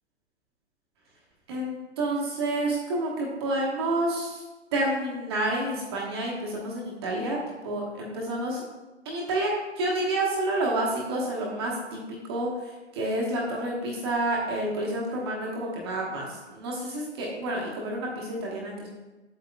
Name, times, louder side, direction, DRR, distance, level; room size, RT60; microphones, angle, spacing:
voice 1, 1.5-4.4 4.7-8.6 9.0-18.9, right 1 dB, 20° right, -3 dB, 1.1 m, -29 dB
8.0 x 7.7 x 2.3 m, 1.1 s
figure-of-eight pair, 135°, 35 cm